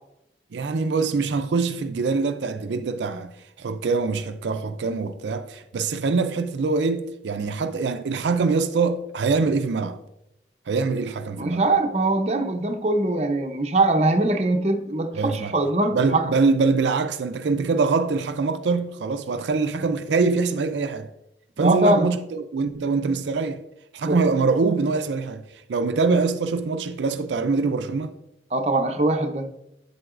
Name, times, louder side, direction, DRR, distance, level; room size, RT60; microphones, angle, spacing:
voice 1, 0.5-10.0 10.7-11.7 15.1-15.5 15.9-21.1 21.6-23.6 23.9-28.1, right 4 dB, 90° right, 0.4 m, -24 dB
voice 2, 11.4-16.2 21.6-22.1 24.0-24.2 28.5-29.5, right 2 dB, 35° right, 0.7 m, -22 dB
8.6 x 7.7 x 2.5 m
head